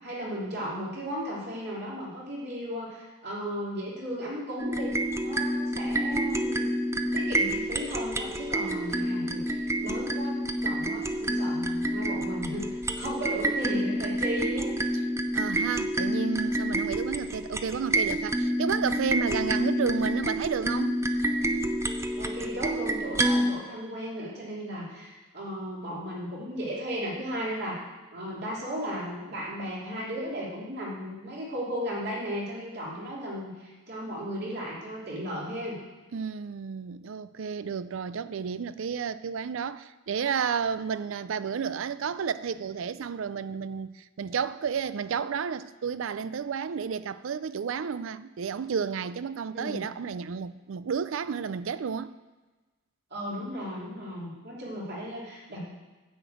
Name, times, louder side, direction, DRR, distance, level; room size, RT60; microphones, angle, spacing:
voice 1, 0.0-6.7 7.1-12.6 13.0-14.7 22.2-27.8 28.1-35.8 49.5-49.8 53.1-55.6, equal, 55° right, 3.0 m, -35 dB
sound 1, 4.6-23.5, right 1 dB, 15° right, 0.5 m, -28 dB
voice 2, 15.3-21.0 36.1-52.1, right 6 dB, 70° right, 0.4 m, -31 dB
9.6 x 5.1 x 7.8 m
head